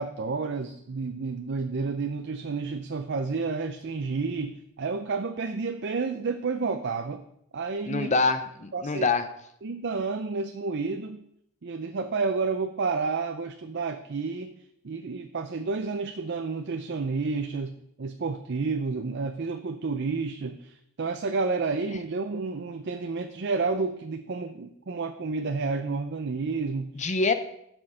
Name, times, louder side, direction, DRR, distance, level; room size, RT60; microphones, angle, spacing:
voice 1, 0.0-7.2 7.5-8.1 8.7-9.1 9.6-11.2 11.6-14.5 14.8-27.1, right 4 dB, 50° right, 7 dB, 0.5 m, -30 dB
voice 2, 7.9-9.3 27.0-27.3, left 4 dB, 30° left, 10 dB, 0.6 m, -25 dB
12.0 x 6.2 x 5.0 m, 0.75 s
head